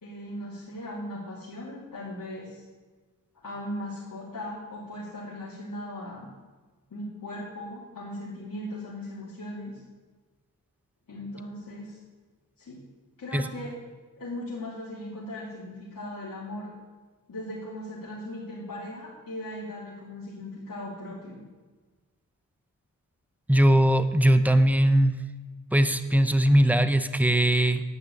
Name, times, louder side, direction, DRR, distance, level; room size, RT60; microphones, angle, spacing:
voice 1, 0.0-2.6 3.4-6.3 6.9-9.8 11.1-12.0 12.6-12.8 13.2-13.8 14.2-16.7 17.3-21.4, left 1 dB, 70° left, -8 dB, 3.0 m, -38 dB
voice 2, 23.5-25.1 25.7-27.8, right 1 dB, 5° right, 9 dB, 0.8 m, -20 dB
10.5 x 6.2 x 8.6 m, 1.3 s
cardioid pair, 60°, 34 cm